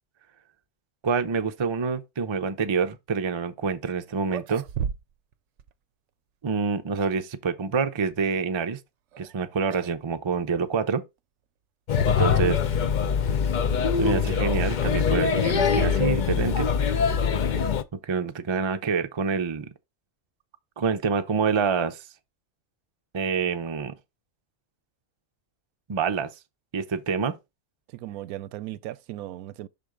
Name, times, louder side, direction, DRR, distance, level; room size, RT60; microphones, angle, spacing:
voice 1, 1.0-4.6 6.4-8.8 9.2-11.0 12.1-12.6 14.0-16.7 17.9-19.7 20.8-22.1 23.1-23.9 25.9-26.3 26.7-27.4, right 5 dB, 50° right, 0.3 m, -27 dB
sound 1, 3.7-3.8 4.2-5.3 5.6-5.7 6.6-7.3 9.1-9.4 9.7-10.0 10.3-10.4 11.2-11.3 13.1-15.2, right 7 dB, 65° right, 0.8 m, -37 dB
Male speech man speaking / Child speech kid speaking / Chatter, 11.9-17.8, left 7 dB, 60° left, 0.4 m, -23 dB
voice 2, 27.9-29.7, right 14 dB, 90° right, 1.0 m, -37 dB
6.0 x 3.8 x 4.9 m
omnidirectional pair, 1.5 m